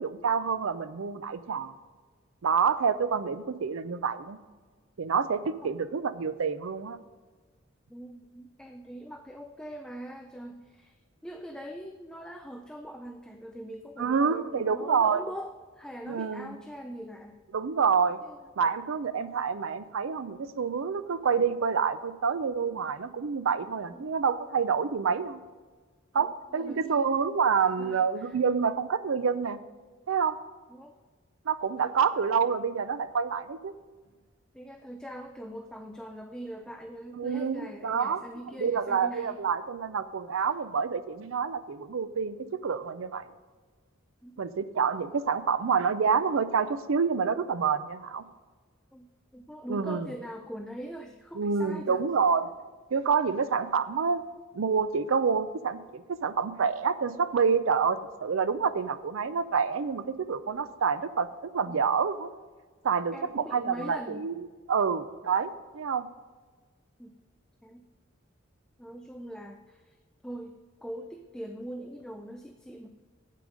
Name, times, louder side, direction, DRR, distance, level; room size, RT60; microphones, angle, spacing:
voice 1, 0.0-1.7 2.4-4.4 5.0-7.0 14.0-15.2 16.1-16.5 17.5-18.2 18.6-25.4 26.1-29.6 30.1-30.4 31.5-33.7 37.2-38.2 38.6-43.3 44.4-48.2 49.7-50.1 51.3-52.5 52.9-54.2 54.5-62.3 62.8-66.1, right 6 dB, 75° right, 14 dB, 0.5 m, -28 dB
voice 2, 7.9-11.0 11.2-17.4 18.2-18.4 23.9-24.1 26.2-27.0 27.8-28.4 30.7-30.9 34.5-39.4 44.2-44.3 48.9-49.1 49.3-52.0 61.7-61.8 63.1-64.2 67.0-67.1 67.6-67.8 68.8-70.0 70.2-72.9, equal, 5° left, 5 dB, 0.3 m, -42 dB
8.3 x 7.7 x 5.1 m, 1.4 s
head